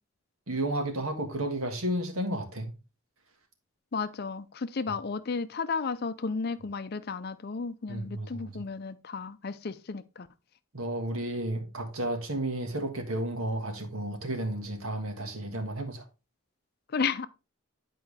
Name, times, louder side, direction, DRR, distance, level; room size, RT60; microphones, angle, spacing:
voice 1, 0.5-2.7 7.9-8.6 10.7-16.0, right 1 dB, 80° right, 1.6 m, -32 dB
voice 2, 3.9-10.3 16.9-17.3, left 5 dB, 45° left, 0.5 m, -33 dB
10.5 x 4.6 x 3.3 m
head